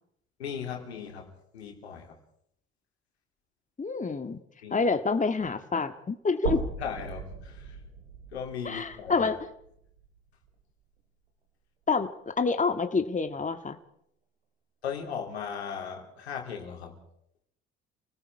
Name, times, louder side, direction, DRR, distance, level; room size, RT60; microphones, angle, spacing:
voice 1, 0.4-2.2 4.6-4.8 6.8-7.8 8.3-9.3 14.8-17.0, left 7 dB, 90° left, 2 dB, 3.4 m, -37 dB
voice 2, 3.8-4.4 4.7-6.6 8.6-9.4 11.9-13.8, left 4 dB, 25° left, 8 dB, 1.8 m, -27 dB
sound 1, 6.5-10.6 11.0-11.1 12.5-12.6, right 5 dB, 90° right, 3.8 m, -38 dB
29.0 x 19.0 x 4.8 m, 0.72 s
hypercardioid pair, 55°, 31 cm